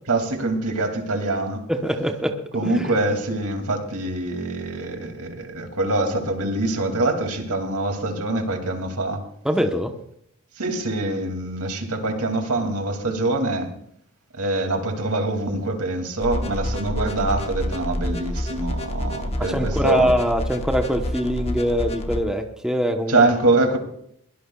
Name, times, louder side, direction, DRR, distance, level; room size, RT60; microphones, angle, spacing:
voice 1, 0.1-1.6 2.5-9.2 10.6-13.7 14.3-20.1 23.1-23.8, right 2 dB, 90° right, 4 dB, 2.6 m, -24 dB
voice 2, 1.7-2.3 2.6-3.0 9.4-9.9 19.5-23.2, equal, 5° right, 3 dB, 1.0 m, -23 dB
sound 1, 16.2-22.2, equal, 25° left, 1.2 m, -28 dB
22.5 x 17.0 x 2.4 m, 0.69 s
head